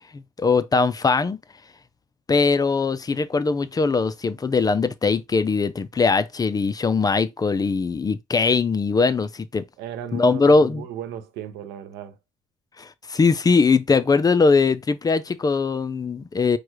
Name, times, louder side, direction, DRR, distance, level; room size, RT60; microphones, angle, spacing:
voice 1, 0.1-1.4 2.3-9.6 10.1-10.8 12.8-16.6, left 4 dB, 20° left, 0.4 m, -21 dB
voice 2, 9.8-12.2, right 9 dB, 85° right, 0.9 m, -36 dB
4.7 x 2.2 x 4.7 m
cardioid pair, 110°, 17 cm